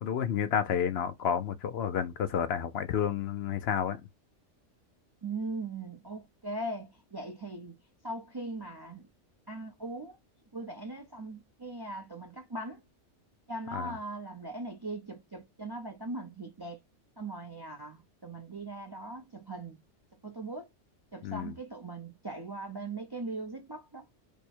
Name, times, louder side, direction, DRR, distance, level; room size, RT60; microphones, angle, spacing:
voice 1, 0.0-4.0 13.7-13.9 21.2-21.5, left 8 dB, 65° left, 0.7 m, -30 dB
voice 2, 5.2-7.8 8.0-9.1 9.5-10.2 10.5-12.8 13.5-16.8 17.2-19.8 20.2-20.7 21.1-24.0, right 2 dB, 30° right, 0.4 m, -40 dB
3.4 x 2.1 x 4.3 m
omnidirectional pair, 1.3 m